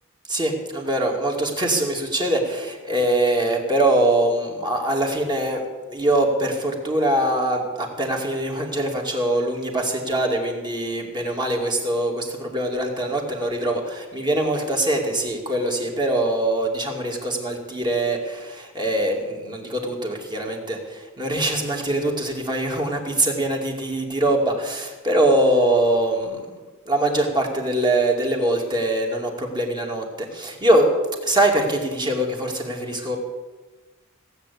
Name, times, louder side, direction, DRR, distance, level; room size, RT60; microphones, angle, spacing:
voice 1, 0.3-5.6 5.9-26.4 26.9-30.9 31.2-33.2, right 1 dB, 20° right, 1 dB, 2.5 m, -23 dB
16.5 x 8.2 x 8.4 m, 1.3 s
head